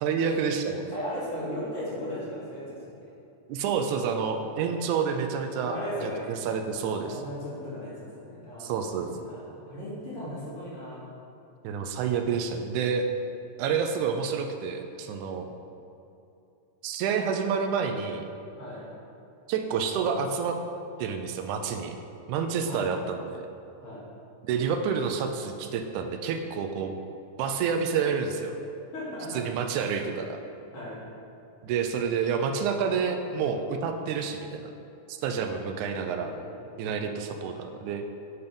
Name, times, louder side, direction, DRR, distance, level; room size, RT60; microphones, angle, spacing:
voice 1, 0.0-0.9 3.5-5.8 6.0-7.2 8.6-9.1 11.6-13.1 13.6-15.5 16.8-18.2 19.5-20.6 21.0-21.9 22.3-23.5 24.4-27.0 27.4-28.6 29.3-30.4 31.6-34.7 35.1-36.3 36.8-38.0, right 6 dB, 80° right, 6 dB, 1.9 m, -29 dB
voice 2, 0.9-3.1 5.6-6.3 7.0-8.8 9.1-11.0 18.6-18.9 22.7-22.9 23.8-24.0 28.9-29.4 29.8-29.9 30.7-31.0 36.1-36.9, equal, 50° left, -9 dB, 2.7 m, -37 dB
8.9 x 4.0 x 5.2 m, 2.7 s
omnidirectional pair, 3.6 m